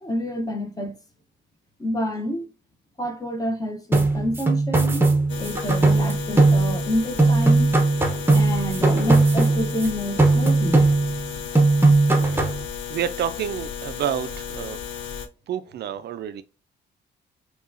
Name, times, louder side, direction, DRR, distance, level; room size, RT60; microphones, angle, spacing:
voice 1, 0.0-0.9 1.8-2.5 3.0-5.1 5.4-7.8 8.3-10.9, equal, 20° left, 0.9 m, -28 dB
sound 1, 3.9-6.9 7.2-9.9 10.2-11.3 11.5-12.6, right 3 dB, 10° right, 0.8 m, -19 dB
sound 2, 5.3-15.3, left 7 dB, 70° left, 0.6 m, -34 dB
voice 2, 12.9-14.8 15.5-16.4, right 9 dB, 55° right, 0.4 m, -29 dB
4.6 x 2.4 x 2.5 m
cardioid pair, 90°, 20 cm